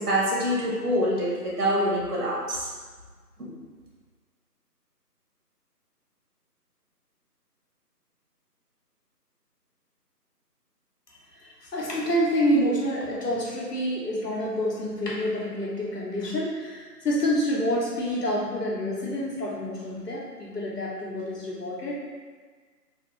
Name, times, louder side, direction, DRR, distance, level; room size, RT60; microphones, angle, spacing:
voice 1, 0.0-2.6 3.4-3.5, equal, 65° right, -5 dB, 1.1 m, -25 dB
voice 2, 11.3-21.9, equal, 70° left, -5 dB, 1.1 m, -28 dB
3.1 x 2.2 x 3.1 m, 1.5 s
figure-of-eight pair, 175°, 49 cm